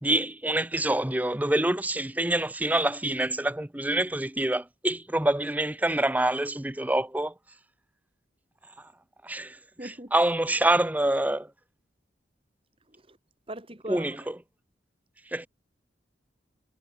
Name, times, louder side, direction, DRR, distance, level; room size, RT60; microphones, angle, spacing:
voice 1, 0.0-7.3 9.2-9.6 10.1-11.5 13.9-14.3 15.3-15.5, right 1 dB, 10° right, 0.7 m, -26 dB
voice 2, 9.8-10.1 12.9-13.2 13.5-14.3, right 1 dB, 30° right, 3.9 m, -41 dB
head